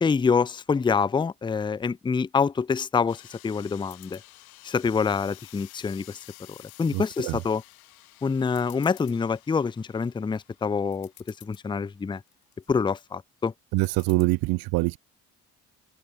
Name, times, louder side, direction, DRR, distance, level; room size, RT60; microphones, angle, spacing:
voice 1, 0.0-4.2 4.6-6.2 6.5-7.6 8.2-11.1 11.4-12.2 12.7-13.5, left 5 dB, 10° left, 0.5 m, -26 dB
sound 1, 3.1-11.7, left 21 dB, 80° left, 1.5 m, -52 dB
sound 2, 3.8-4.3 4.8-5.6 6.0-6.8 7.3-7.7 8.1-8.2 8.5-9.2 9.7-10.1 10.6-10.7 10.9-11.7 12.2-12.7 13.8-14.2, left 12 dB, 55° left, 2.2 m, -53 dB
voice 2, 6.9-7.4 13.7-15.0, right 23 dB, 55° right, 0.5 m, -24 dB
hypercardioid pair, 50°, 43 cm